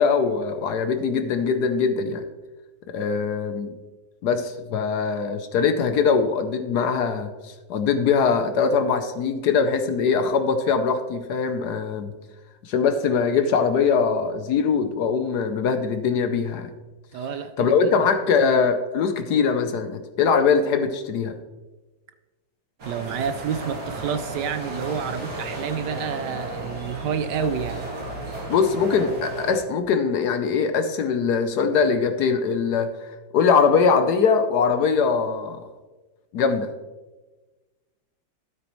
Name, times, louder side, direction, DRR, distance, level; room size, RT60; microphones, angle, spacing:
voice 1, 0.0-2.2 2.9-3.7 4.2-12.1 12.6-16.7 17.6-21.3 28.5-35.6 36.3-36.7, left 5 dB, 65° left, 8 dB, 1.1 m, -22 dB
voice 2, 17.1-17.9 18.5-18.6 22.8-27.9, right 7 dB, 70° right, 10 dB, 1.1 m, -29 dB
sound 1, 22.8-29.6, right 2 dB, 55° right, 2.5 m, -34 dB
12.5 x 8.2 x 3.1 m, 1.2 s
omnidirectional pair, 2.1 m